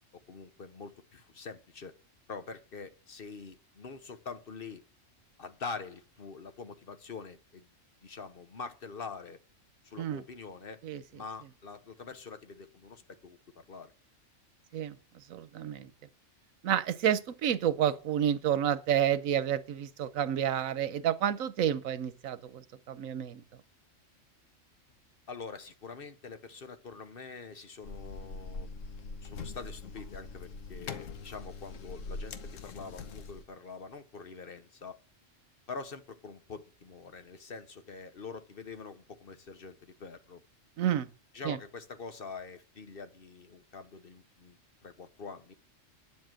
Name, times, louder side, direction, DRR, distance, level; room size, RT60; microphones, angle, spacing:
voice 1, 0.3-1.9 2.3-4.8 5.4-7.7 8.0-9.4 9.8-10.8 11.1-13.9 25.3-28.8 29.0-35.0 35.7-40.4 41.3-45.5, left 4 dB, 50° left, 1.1 m, -45 dB
voice 2, 15.3-15.9 16.6-23.4 40.8-41.1 41.4-41.6, right 10 dB, 90° right, 1.2 m, -30 dB
sound 1, 27.8-33.4, left 4 dB, 75° left, 1.3 m, -42 dB
9.4 x 7.7 x 7.6 m
omnidirectional pair, 1.4 m